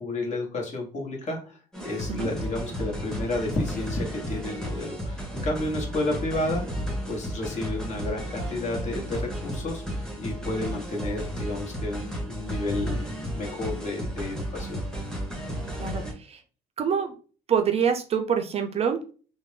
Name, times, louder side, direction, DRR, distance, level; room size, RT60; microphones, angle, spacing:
voice 1, 0.0-14.8, left 2 dB, 45° left, 0 dB, 1.0 m, -31 dB
sound 1, 1.7-16.1, equal, 5° left, 0.8 m, -33 dB
voice 2, 15.8-16.4 16.8-17.1 17.5-19.1, right 7 dB, 40° right, 6 dB, 0.4 m, -26 dB
2.5 x 2.0 x 3.1 m, 0.37 s
cardioid pair, 110°, 17 cm